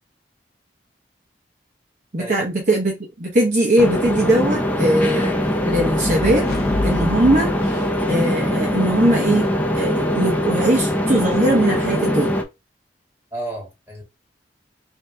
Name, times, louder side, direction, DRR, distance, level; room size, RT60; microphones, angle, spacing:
voice 1, 2.1-5.4 5.6-6.5 6.8-9.5 9.7-12.3, right 1 dB, 45° right, 0.8 m, -20 dB
sound 1, 3.8-12.4, left 1 dB, 10° left, 0.5 m, -22 dB
sound 2, 5.3-8.5, left 2 dB, 55° left, 0.6 m, -29 dB
voice 2, 13.3-14.0, right 1 dB, 15° right, 2.3 m, -32 dB
3.3 x 2.7 x 3.4 m
head